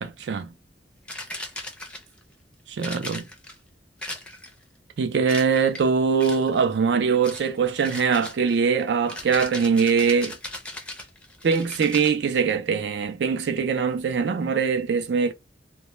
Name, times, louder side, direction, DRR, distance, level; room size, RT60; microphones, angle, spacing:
voice 1, 0.0-0.5 2.7-3.2 5.0-10.4 11.4-15.3, right 5 dB, 70° right, 0.4 m, -22 dB
sound 1, 1.1-2.2 2.8-3.6 4.0-4.6 5.3-5.9 6.2-6.6 7.2-7.5 7.8-12.2, left 1 dB, 5° left, 0.4 m, -38 dB
2.1 x 2.1 x 2.9 m
head